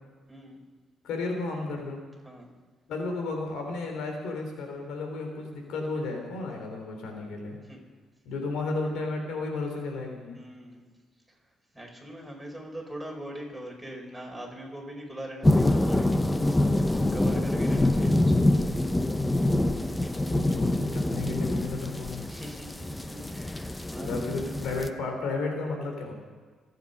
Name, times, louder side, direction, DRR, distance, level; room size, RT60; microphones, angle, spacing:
voice 1, 1.0-2.0 2.9-7.6 8.3-10.4 20.3-22.2 24.0-26.1, left 3 dB, 85° left, 3 dB, 3.5 m, -33 dB
voice 2, 10.4-10.8 11.8-16.4 17.1-18.7 22.3-24.5, right 1 dB, 5° right, -1 dB, 5.4 m, -42 dB
sound 1, 15.4-24.9, left 1 dB, 15° left, 0.9 m, -25 dB
27.5 x 9.5 x 5.5 m, 1.5 s
cardioid pair, 90°, 0 cm